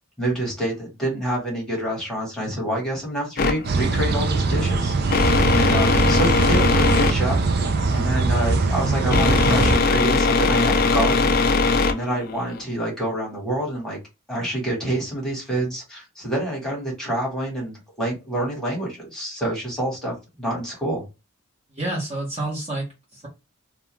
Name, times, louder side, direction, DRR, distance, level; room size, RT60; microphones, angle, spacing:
voice 1, 0.0-11.4 11.8-14.0 14.3-21.1, right 1 dB, ahead, -4 dB, 1.2 m, -27 dB
sound 1, 3.4-12.6, left 4 dB, 40° left, 0.4 m, -21 dB
sound 2, 3.6-9.8, right 3 dB, 45° right, 0.4 m, -22 dB
voice 2, 21.7-23.3, right 2 dB, 30° right, -4 dB, 0.9 m, -29 dB
2.3 x 2.3 x 2.9 m, 0.26 s
head